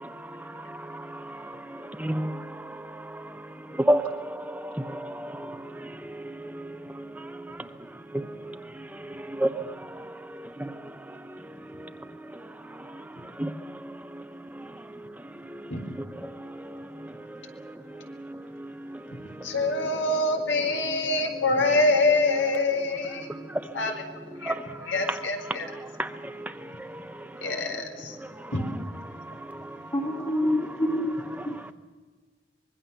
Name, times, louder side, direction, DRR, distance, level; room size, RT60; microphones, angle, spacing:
voice 1, 0.0-15.7 16.2-19.5 20.9-21.0 21.3-21.4 23.2-23.8 24.4-27.6 28.1-28.5 29.0-29.9 31.5-31.7, right 1 dB, 10° right, 0.8 m, -35 dB
voice 2, 19.2-23.3 23.7-24.6 24.9-25.7 27.4-28.2 28.5-28.7, left 2 dB, 75° left, 4.3 m, -25 dB
voice 3, 29.9-31.5, left 1 dB, 25° left, 2.3 m, -27 dB
25.0 x 22.5 x 7.2 m
head